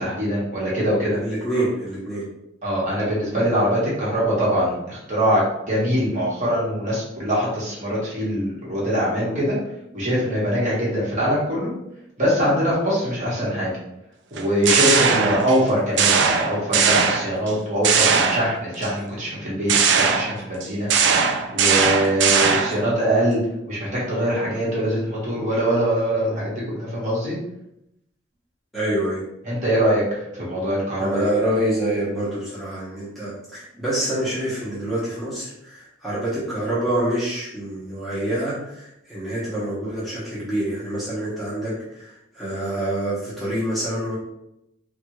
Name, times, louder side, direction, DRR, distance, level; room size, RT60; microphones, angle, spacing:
voice 1, 0.0-1.2 2.6-9.6 9.9-11.7 12.2-13.7 14.3-21.1 21.5-27.3 29.4-31.3, equal, 40° right, -7 dB, 1.2 m, -23 dB
voice 2, 1.2-2.2 15.1-15.3 22.2-22.5 28.7-29.2 31.0-44.2, right 1 dB, ahead, -10 dB, 0.9 m, -26 dB
sound 1, 14.4-15.6 16.0-17.5 17.8-18.9 19.7-22.9, right 6 dB, 70° right, 0.3 m, -19 dB
3.4 x 2.3 x 3.0 m, 0.83 s
head